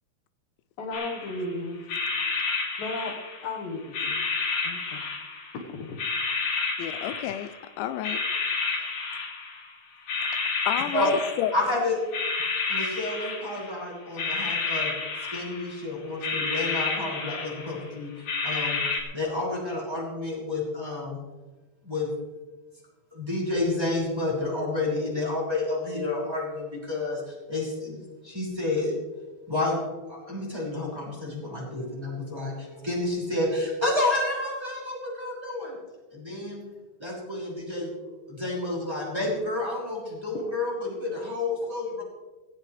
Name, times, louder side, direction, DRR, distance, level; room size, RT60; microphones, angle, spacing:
voice 1, 0.8-1.8 2.8-3.1 3.4-4.2 4.6-5.1 5.7-6.0, left 2 dB, 60° left, 1 dB, 2.6 m, -34 dB
sound 1, 0.9-1.5 1.9-3.5 3.9-5.6 6.0-7.6 8.0-9.7 10.1-11.8 12.1-13.8 14.2-15.8 16.2-17.8 18.3-19.0, left 4 dB, 45° left, 3.4 m, -30 dB
voice 2, 6.8-7.5 7.8-8.2 10.2-10.3 10.7-11.5, left 12 dB, 85° left, 12 dB, 2.9 m, -30 dB
voice 3, 11.5-12.0 12.7-14.9 15.3-18.8 19.1-21.2 21.8-22.1 23.1-28.9 29.5-29.8 30.1-35.8 36.1-36.6 37.0-42.0, left 2 dB, 5° right, -5 dB, 5.5 m, -30 dB
17.5 x 17.5 x 3.3 m, 1.2 s
omnidirectional pair, 5.1 m